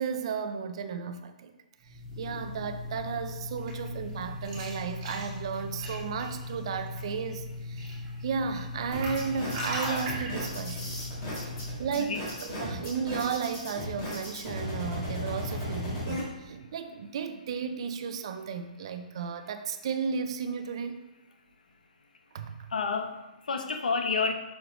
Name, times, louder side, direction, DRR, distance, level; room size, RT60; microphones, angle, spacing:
voice 1, 0.0-1.5 1.9-11.0 11.8-21.1 22.3-22.7, right 6 dB, 40° right, 8 dB, 0.5 m, -34 dB
sound 1, 1.8-11.8, left 1 dB, 20° right, 1.7 m, -38 dB
sound 2, 8.9-16.2, left 1 dB, 30° left, 2.3 m, -36 dB
voice 2, 22.7-24.3, left 4 dB, 80° left, 6 dB, 0.8 m, -29 dB
6.4 x 4.6 x 3.9 m, 1.0 s
hypercardioid pair, 170°, 4 cm